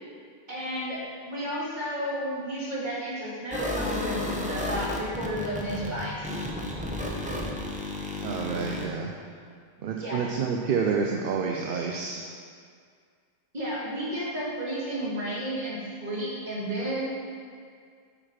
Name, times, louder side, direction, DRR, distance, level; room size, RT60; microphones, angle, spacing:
voice 1, 0.5-4.2 4.5-6.4 10.0-10.2 13.5-17.0, equal, 50° right, -8 dB, 2.3 m, -32 dB
sound 1, 3.5-8.9, left 1 dB, 10° right, 0.6 m, -32 dB
voice 2, 8.2-9.1 9.8-12.2, right 5 dB, 65° right, 1 dB, 0.7 m, -28 dB
8.5 x 5.0 x 4.3 m, 2.1 s
omnidirectional pair, 1.0 m